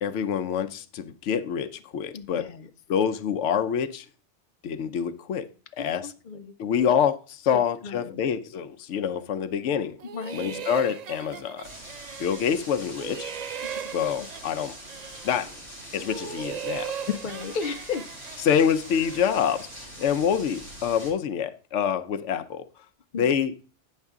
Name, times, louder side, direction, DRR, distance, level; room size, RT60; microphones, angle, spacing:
voice 1, 0.0-2.5 2.9-4.1 4.6-5.5 5.8-6.1 6.6-10.0 10.3-11.6 12.2-13.3 13.9-14.7 15.2-15.5 15.9-17.2 18.4-22.7 23.1-23.5, left 8 dB, 80° left, 0.9 m, -26 dB
voice 2, 2.1-2.7 5.8-6.9 7.5-8.2 10.1-10.6 13.8-14.3 17.1-18.1 23.1-23.3, left 5 dB, 50° left, 0.7 m, -36 dB
sound 1, 10.0-12.7 13.0-15.5 16.0-19.7, right 9 dB, 65° right, 0.4 m, -38 dB
sound 2, 11.6-21.1, right 1 dB, 80° right, 4.2 m, -43 dB
8.9 x 6.5 x 3.5 m
omnidirectional pair, 1.2 m